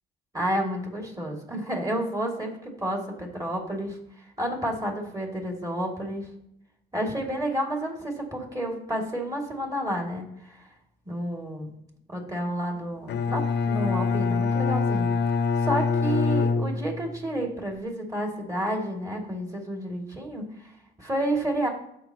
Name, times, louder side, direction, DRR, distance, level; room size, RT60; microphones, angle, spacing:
voice 1, 0.3-6.3 6.9-10.7 11.1-11.7 12.1-15.1 15.6-20.7 21.0-21.7, right 1 dB, 15° right, 0 dB, 2.6 m, -30 dB
Bowed string instrument, 13.1-17.3, left 4 dB, 60° left, 0.8 m, -25 dB
15.0 x 5.7 x 3.0 m, 0.76 s
cardioid pair, 90°, 20 cm